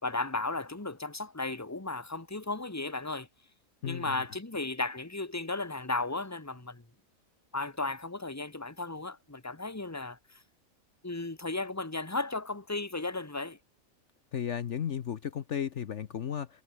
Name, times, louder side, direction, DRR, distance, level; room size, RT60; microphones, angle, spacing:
voice 1, 0.0-3.3 3.8-6.8 7.5-10.4 11.0-13.6, left 3 dB, 10° left, 1.7 m, -35 dB
voice 2, 3.8-4.2 14.3-16.6, left 9 dB, 60° left, 1.2 m, -34 dB
omnidirectional pair, 1.5 m